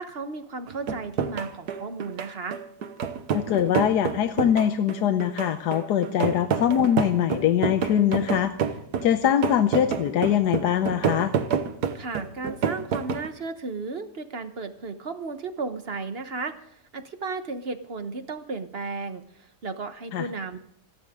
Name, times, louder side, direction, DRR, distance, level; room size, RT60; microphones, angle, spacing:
voice 1, 0.0-2.6 11.9-20.6, right 4 dB, 40° right, 9 dB, 1.3 m, -34 dB
sound 1, 0.7-13.3, right 7 dB, 75° right, 1.6 m, -29 dB
voice 2, 3.3-8.5 9.0-11.3 20.1-20.3, left 10 dB, 85° left, 9 dB, 1.4 m, -23 dB
27.0 x 10.5 x 3.7 m, 0.73 s
omnidirectional pair, 1.7 m